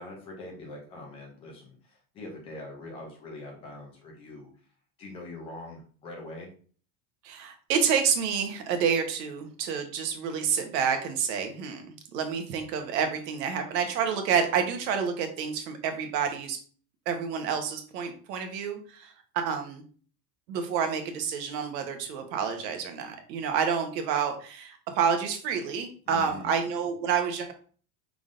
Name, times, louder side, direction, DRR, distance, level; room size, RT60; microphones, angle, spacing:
voice 1, 0.0-4.5 5.0-6.5 26.1-26.5, left 2 dB, 15° left, -1 dB, 0.3 m, -43 dB
voice 2, 7.2-11.9 12.1-16.6 17.1-19.8 20.5-27.5, right 7 dB, 80° right, 6 dB, 1.2 m, -29 dB
5.2 x 3.7 x 2.5 m, 0.43 s
supercardioid pair, 175°, 50 cm